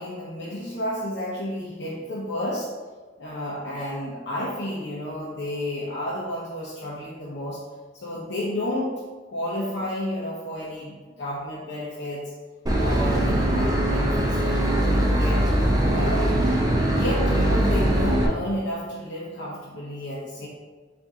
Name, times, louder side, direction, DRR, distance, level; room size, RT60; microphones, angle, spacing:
voice 1, 0.0-2.7 3.2-9.0 9.3-12.3 12.8-15.5 15.9-16.4 16.7-20.5, left 1 dB, 80° left, -6 dB, 0.7 m, -31 dB
Boat Water vehicle / Engine, 12.7-18.3, right 1 dB, 20° right, 0.5 m, -21 dB
4.0 x 2.6 x 3.5 m, 1.4 s
head